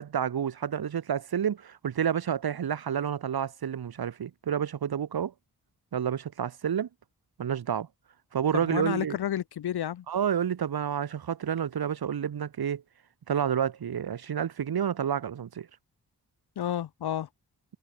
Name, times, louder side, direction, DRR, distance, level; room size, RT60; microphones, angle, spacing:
voice 1, 0.0-5.3 5.9-6.9 7.4-7.9 8.3-9.2 10.1-12.8 13.3-15.7, right 8 dB, 75° right, 1.4 m, -29 dB
voice 2, 8.5-10.0 16.6-17.3, left 10 dB, 90° left, 0.9 m, -31 dB
cardioid pair, 55°, 37 cm